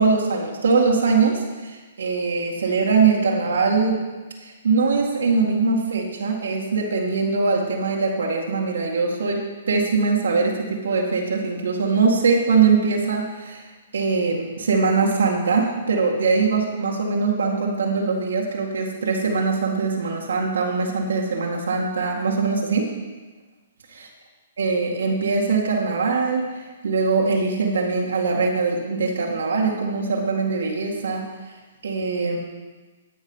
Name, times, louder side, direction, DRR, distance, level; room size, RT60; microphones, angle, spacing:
voice 1, 0.0-4.0 4.4-13.6 13.9-22.9 24.6-26.4 26.8-31.2 31.8-32.4, right 4 dB, 80° right, -1 dB, 2.0 m, -22 dB
12.5 x 6.4 x 5.6 m, 1.3 s
hypercardioid pair, 140°, 0 cm